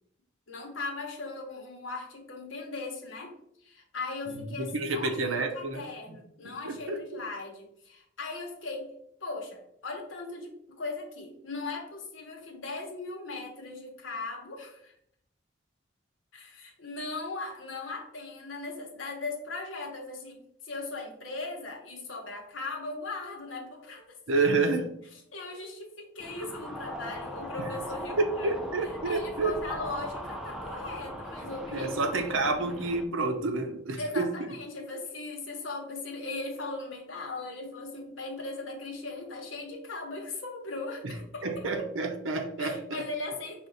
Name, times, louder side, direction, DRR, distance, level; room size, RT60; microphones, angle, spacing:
voice 1, 0.5-3.3 3.6-14.9 16.3-20.4 20.6-24.2 25.3-28.6 29.0-31.9 34.0-41.6 42.6-43.7, left 3 dB, 80° left, 1 dB, 1.0 m, -38 dB
voice 2, 4.3-5.8 6.1-6.2 6.4-7.2 24.3-24.9 27.6-27.7 28.2-29.6 31.7-34.5 41.0-41.1 41.4-43.0, right 3 dB, 85° right, 6 dB, 0.6 m, -29 dB
sound 1, 26.2-33.0, equal, ahead, 0.4 m, -39 dB
5.0 x 2.5 x 3.9 m, 0.71 s
head